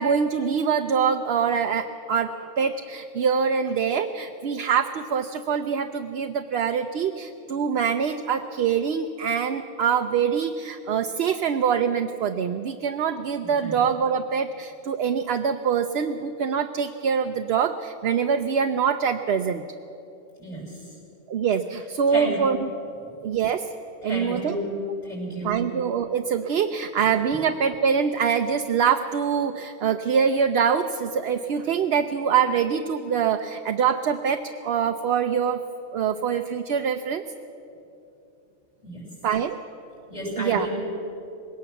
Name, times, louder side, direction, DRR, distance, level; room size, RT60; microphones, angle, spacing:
voice 1, 0.0-19.6 21.3-22.7 23.2-23.7 24.0-24.6 25.4-35.6 35.9-37.2 39.2-39.6 40.3-40.7, right 7 dB, 60° right, 6 dB, 0.8 m, -24 dB
voice 2, 20.4-20.8 22.1-22.4 23.0-23.2 24.0-24.7 25.0-25.7 38.8-39.0 40.1-40.7, equal, 35° left, -6 dB, 6.7 m, -32 dB
20.5 x 18.0 x 7.0 m, 2.9 s
omnidirectional pair, 1.3 m